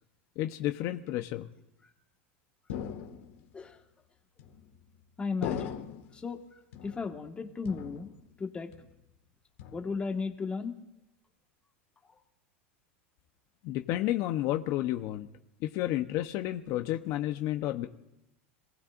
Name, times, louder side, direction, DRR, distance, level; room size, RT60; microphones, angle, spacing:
voice 1, 0.4-1.5 13.6-15.3 15.6-17.9, left 14 dB, 50° left, 6 dB, 1.0 m, -31 dB
sound 1, 2.7-3.5 4.4-4.9 5.4-6.2 6.7-7.3 7.6-8.4 8.7-9.2 9.6-10.2, left 9 dB, 75° left, 1.9 m, -40 dB
voice 2, 5.2-5.9 6.1-8.1 8.4-8.7 9.7-10.8 12.1-12.2, left 4 dB, 15° left, 4 dB, 1.7 m, -35 dB
27.0 x 18.5 x 2.6 m, 0.91 s
supercardioid pair, 125°, 7 cm